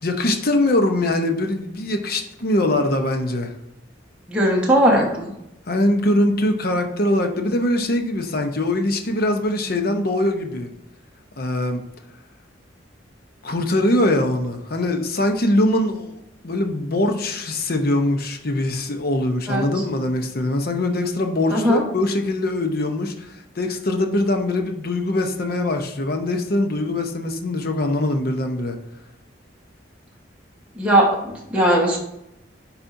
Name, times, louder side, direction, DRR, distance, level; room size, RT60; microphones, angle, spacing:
voice 1, 0.0-3.5 5.7-10.7 11.4-11.8 13.4-16.2 16.4-28.7, left 1 dB, 55° left, 5 dB, 0.8 m, -22 dB
voice 2, 4.3-5.3 19.5-19.6 21.5-21.8 30.8-32.0, right 1 dB, 5° right, -3 dB, 1.2 m, -18 dB
9.9 x 4.3 x 2.7 m, 0.84 s
head